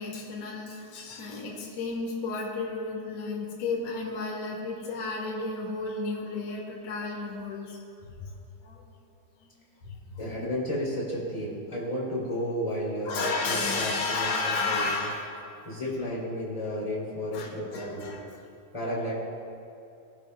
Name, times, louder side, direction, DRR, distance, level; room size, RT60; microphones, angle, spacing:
voice 1, 0.0-7.8 8.1-8.3 8.6-8.8 9.4-9.5 9.8-10.2 13.0-15.4 17.3-18.3, left 3 dB, 50° left, -3 dB, 2.6 m, -32 dB
voice 2, 10.2-15.1 15.6-18.1 18.7-19.1, equal, 10° left, -6 dB, 2.4 m, -32 dB
19.5 x 11.5 x 2.3 m, 2.7 s
omnidirectional pair, 4.5 m